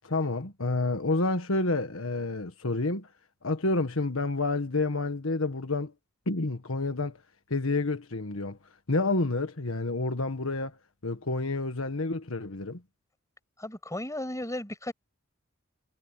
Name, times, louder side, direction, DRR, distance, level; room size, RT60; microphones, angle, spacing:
voice 1, 0.0-3.1 3.4-5.9 6.2-7.2 7.5-8.6 8.9-10.7 11.0-12.8, left 2 dB, 80° left, 1.5 m, -29 dB
voice 2, 13.6-14.9, left 1 dB, 15° left, 6.9 m, -35 dB
head